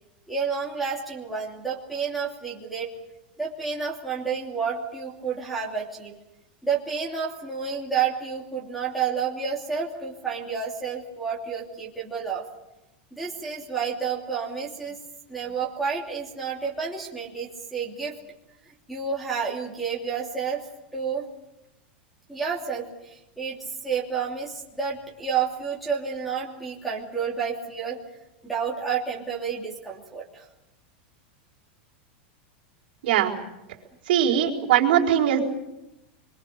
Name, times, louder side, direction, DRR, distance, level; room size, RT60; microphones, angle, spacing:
voice 1, 0.3-2.9 3.4-6.2 6.6-12.4 13.1-15.0 15.3-18.1 18.6-20.6 20.9-21.3 22.3-28.0 28.4-30.5, right 6 dB, ahead, -6 dB, 2.9 m, -30 dB
voice 2, 33.0-33.3 34.1-35.4, right 10 dB, 65° right, -2 dB, 4.3 m, -20 dB
26.5 x 23.0 x 6.7 m, 0.94 s
supercardioid pair, 170°, 6 cm